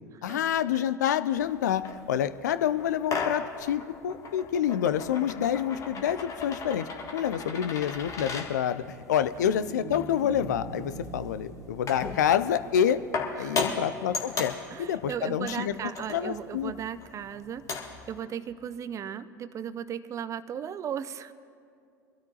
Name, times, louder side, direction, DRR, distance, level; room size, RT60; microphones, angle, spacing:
voice 1, 0.2-1.8 2.1-13.0 13.4-15.7 16.1-16.7, left 9 dB, 70° left, 13 dB, 0.5 m, -27 dB
sound 1, 1.4-18.1, left 4 dB, 35° left, 1.8 m, -38 dB
sound 2, 8.8-13.1, right 2 dB, 70° right, 1.2 m, -43 dB
voice 2, 13.4-13.8 14.7-17.6 18.1-21.3, right 8 dB, 30° right, 15 dB, 0.6 m, -36 dB
24.5 x 13.0 x 2.9 m, 2.3 s
figure-of-eight pair, 75°, 10 cm